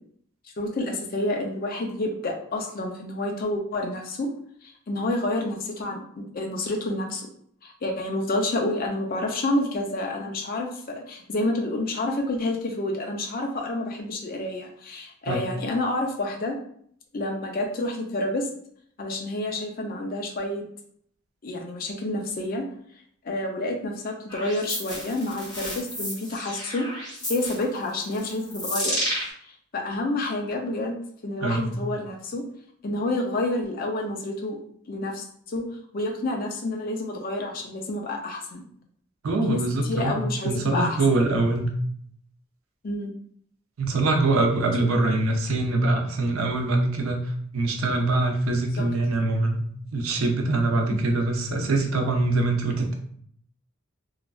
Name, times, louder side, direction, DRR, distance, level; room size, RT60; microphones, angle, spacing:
voice 1, 0.6-4.3 4.9-7.3 7.6-16.6 17.1-18.5 19.0-20.6 21.4-22.6 23.2-26.9 27.3-29.0 29.7-31.0 31.2-32.4 32.8-34.6 34.9-35.7 35.9-38.7 39.4-41.2 42.8-43.1 48.8-48.9, left 2 dB, 45° left, 2 dB, 0.4 m, -29 dB
sound 1, 24.3-29.3, equal, 20° left, 1.5 m, -32 dB
voice 2, 31.4-31.7 39.2-41.7 43.8-47.2 47.5-49.6 49.9-52.9, right 2 dB, 80° right, 2 dB, 0.6 m, -23 dB
3.1 x 2.4 x 2.3 m, 0.64 s
head